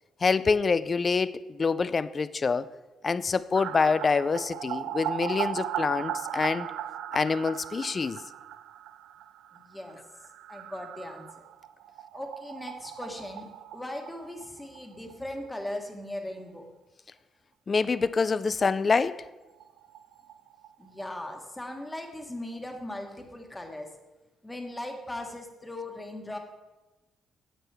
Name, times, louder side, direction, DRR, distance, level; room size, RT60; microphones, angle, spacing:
voice 1, 0.2-2.7 3.0-6.7 7.1-8.2 17.7-19.2, left 4 dB, 35° left, 16 dB, 0.3 m, -26 dB
sound 1, 3.5-15.1 15.4-15.5 15.8-15.9 18.9-19.0 19.3-19.4 19.6-21.4 21.7-21.8, right 11 dB, 90° right, 0.3 m, -38 dB
voice 2, 9.5-10.0 10.5-11.4 12.1-16.7 20.8-23.9 24.4-26.4, left 1 dB, 10° left, 3 dB, 1.4 m, -39 dB
10.0 x 8.0 x 3.4 m, 1.1 s
cardioid pair, 90°, 0 cm